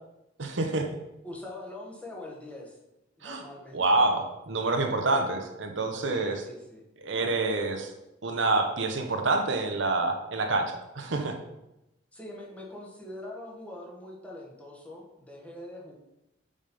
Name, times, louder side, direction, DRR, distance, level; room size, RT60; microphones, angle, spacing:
voice 1, 0.4-0.9 3.2-3.4 3.7-6.4 7.0-7.9 8.2-11.4, right 2 dB, 70° right, 4 dB, 0.9 m, -27 dB
voice 2, 1.2-2.8 3.2-3.8 6.0-6.8 12.1-16.0, left 1 dB, 5° left, -3 dB, 1.3 m, -43 dB
5.5 x 5.0 x 5.3 m, 0.91 s
head